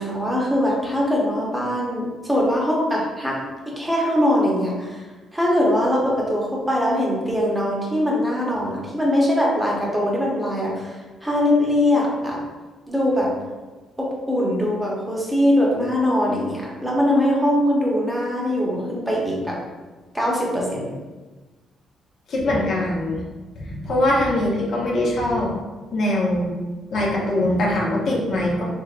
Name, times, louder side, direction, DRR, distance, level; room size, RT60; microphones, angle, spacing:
voice 1, 0.0-3.4 3.7-5.0 5.3-11.0 11.2-12.4 12.9-13.3 14.0-19.6 20.1-20.9, left 1 dB, 10° right, -3 dB, 0.9 m, -21 dB
voice 2, 22.3-23.2 23.5-25.5 25.9-26.5 26.9-28.6, left 1 dB, 65° left, -4 dB, 0.9 m, -22 dB
3.4 x 3.4 x 2.4 m, 1.2 s
cardioid pair, 90°, 0 cm